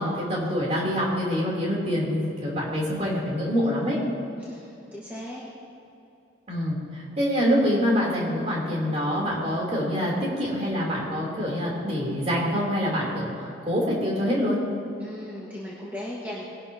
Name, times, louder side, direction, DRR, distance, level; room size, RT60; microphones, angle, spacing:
voice 1, 0.0-4.0 6.5-14.6, equal, 35° right, -4 dB, 3.1 m, -26 dB
voice 2, 4.4-5.4 15.0-16.4, left 1 dB, 10° right, -7 dB, 1.5 m, -37 dB
20.5 x 11.5 x 2.8 m, 2.8 s
head